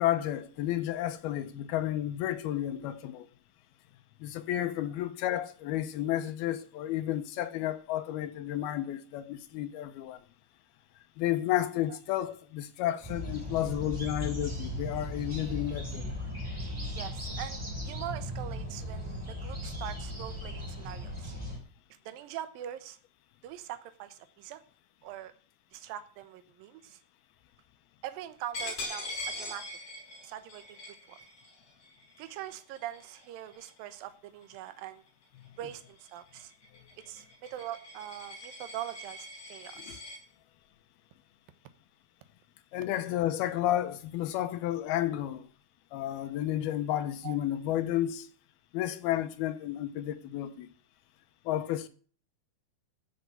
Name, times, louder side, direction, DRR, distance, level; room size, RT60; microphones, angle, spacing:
voice 1, 0.0-3.3 4.2-10.2 11.2-16.1 39.8-40.0 42.7-45.5 45.9-48.3 48.7-50.7 51.5-51.9, left 12 dB, 75° left, 2.7 m, -32 dB
sound 1, 13.0-21.6, left 1 dB, 5° right, 3.3 m, -37 dB
voice 2, 16.9-21.3 22.1-23.0 23.4-24.6 25.0-25.3 25.7-27.0 28.0-29.7 30.2-30.8 31.1-31.2 32.2-35.0 35.6-36.5 37.1-40.0 47.2-47.4, right 12 dB, 70° right, 2.6 m, -42 dB
Coin (dropping), 28.5-33.9 34.4-34.7 35.1-40.2, left 2 dB, 50° left, 8.0 m, -43 dB
14.5 x 6.7 x 8.3 m
omnidirectional pair, 4.6 m